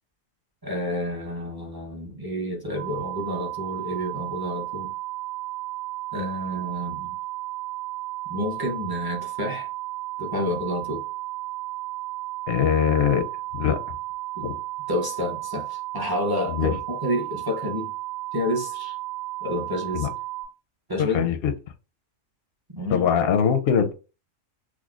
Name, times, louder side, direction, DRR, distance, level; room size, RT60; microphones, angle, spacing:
voice 1, 0.6-4.9 6.1-7.1 8.3-9.7 10.2-11.0 14.4-14.5 14.9-17.9 18.3-19.0 19.4-20.1 20.9-21.3 22.7-23.0, left 1 dB, 25° right, 0.6 m, -29 dB
sound 1, 2.8-20.4, right 18 dB, 60° right, 2.1 m, -34 dB
voice 2, 12.5-13.2 13.5-13.8 14.4-14.6 16.5-16.7 19.9-20.1 21.0-21.5 22.9-23.9, left 8 dB, 65° left, 0.6 m, -22 dB
5.9 x 2.1 x 2.3 m
omnidirectional pair, 1.3 m